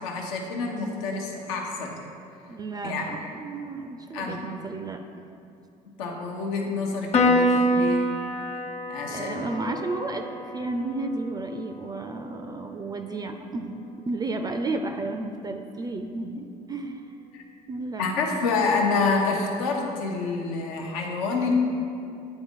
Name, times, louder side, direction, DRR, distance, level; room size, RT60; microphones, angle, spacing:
voice 1, 0.0-2.0 2.8-3.1 4.1-4.4 6.0-8.1 8.9-9.5 17.3-17.4 18.0-21.5, left 4 dB, 85° left, 1 dB, 0.8 m, -28 dB
voice 2, 2.5-5.3 9.1-17.1 17.7-18.0, right 2 dB, 25° right, 6 dB, 0.4 m, -32 dB
Piano, 7.1-13.8, equal, 35° left, 0.8 m, -27 dB
8.8 x 4.0 x 3.6 m, 2.6 s
supercardioid pair, 80°, 17 cm